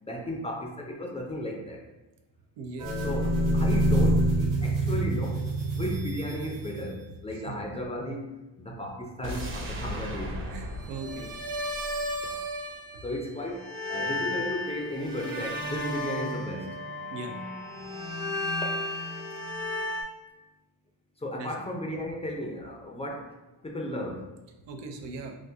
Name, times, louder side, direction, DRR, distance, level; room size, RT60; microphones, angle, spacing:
voice 1, 0.0-1.8 3.0-5.4 5.7-8.3 8.6-10.5 13.0-16.8 18.6-19.2 21.2-23.4 23.6-24.3, left 1 dB, 15° left, 0 dB, 0.3 m, -35 dB
voice 2, 2.6-2.9 7.3-7.5 10.5-11.3 12.9-13.0 17.1-17.3 21.4-21.5 24.7-25.4, right 3 dB, 90° right, 4 dB, 0.6 m, -39 dB
sound 1, 2.8-7.0 10.8-13.2 13.5-20.0, right 1 dB, 50° right, 0.9 m, -29 dB
sound 2, 9.2-12.4 12.7-12.8, equal, 30° right, 0.6 m, -37 dB
3.6 x 2.4 x 2.6 m, 1.1 s
cardioid pair, 130°, 42 cm